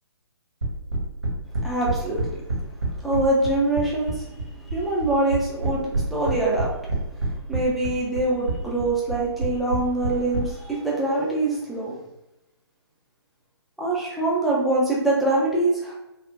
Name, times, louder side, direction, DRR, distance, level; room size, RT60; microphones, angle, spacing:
sound 1, 0.6-10.4, right 3 dB, 75° right, 0.9 m, -27 dB
voice 1, 1.6-2.4 3.0-6.7 7.5-11.9 13.8-15.9, right 2 dB, ahead, -6 dB, 0.3 m, -24 dB
3.3 x 2.1 x 2.5 m, 0.94 s
figure-of-eight pair, 135°, 14 cm